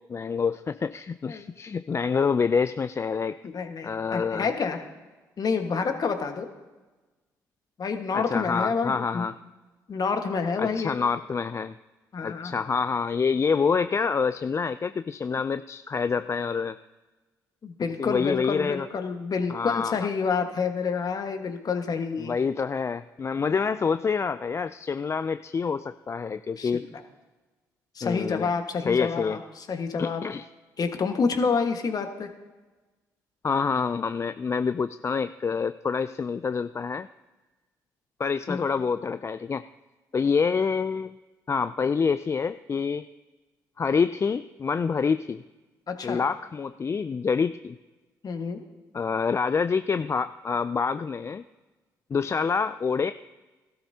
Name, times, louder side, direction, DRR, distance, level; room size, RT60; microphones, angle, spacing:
voice 1, 0.1-3.4 3.8-4.5 8.1-9.4 10.6-11.7 12.2-16.8 18.0-18.9 19.5-20.0 22.2-26.8 28.0-28.5 28.9-29.4 30.0-30.5 33.4-37.1 38.2-39.6 40.1-41.2 41.5-43.1 43.8-45.4 46.0-47.8 48.9-51.4 52.1-53.1, left 5 dB, 30° left, 13 dB, 0.4 m, -27 dB
voice 2, 3.4-4.8 5.4-6.5 7.8-9.3 9.9-11.0 12.1-12.6 17.6-22.3 23.5-23.7 26.6-27.0 27.9-30.2 30.8-32.3 38.5-38.6 45.9-46.2 48.2-48.6, left 5 dB, 45° left, 6 dB, 1.5 m, -28 dB
16.0 x 12.5 x 2.8 m, 1.2 s
hypercardioid pair, 50°, 9 cm